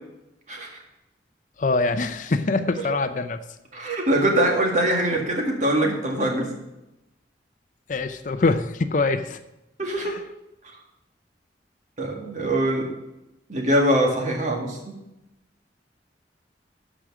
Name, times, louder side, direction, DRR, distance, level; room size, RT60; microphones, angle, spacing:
voice 1, 1.6-3.4 7.9-9.4 10.0-10.2, left 3 dB, 45° left, 10 dB, 0.5 m, -24 dB
voice 2, 3.7-6.5 9.8-10.1 12.0-12.9 13.5-15.0, right 1 dB, 40° right, 1 dB, 2.0 m, -23 dB
13.0 x 5.1 x 6.1 m, 0.92 s
head